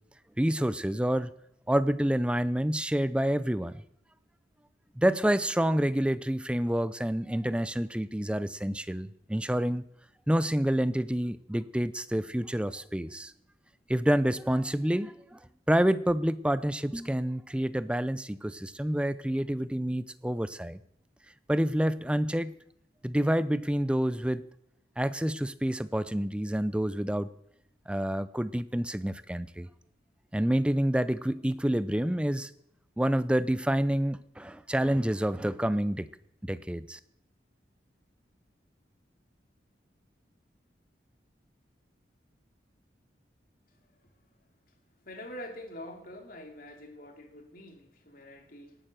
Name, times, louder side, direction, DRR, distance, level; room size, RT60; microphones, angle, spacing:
voice 1, 0.4-1.3 1.7-3.8 5.0-9.8 10.3-13.3 13.9-15.4 15.7-20.8 21.5-22.5 23.0-24.4 25.0-27.3 27.9-29.7 30.3-32.5 33.0-36.1 36.4-37.0, equal, 5° right, 15 dB, 0.5 m, -28 dB
voice 2, 43.7-44.1 44.7-44.8 45.0-48.8, left 1 dB, 50° left, 3 dB, 2.9 m, -45 dB
18.0 x 8.9 x 6.6 m, 0.74 s
head